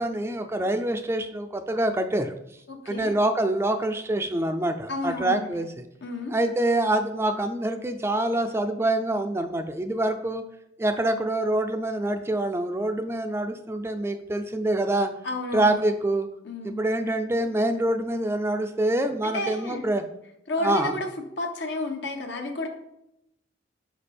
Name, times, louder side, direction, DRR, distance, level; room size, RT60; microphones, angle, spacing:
voice 1, 0.0-2.3 2.9-5.7 6.3-10.4 10.8-15.1 15.5-16.3 16.6-20.0 20.6-21.0, right 1 dB, 15° right, 7 dB, 0.3 m, -25 dB
voice 2, 2.7-3.1 4.9-5.6 6.0-6.3 15.2-15.8 16.4-16.8 19.2-19.8 20.5-21.1 21.4-22.7, left 2 dB, 75° left, 4 dB, 1.0 m, -31 dB
5.1 x 5.1 x 4.2 m, 0.84 s
head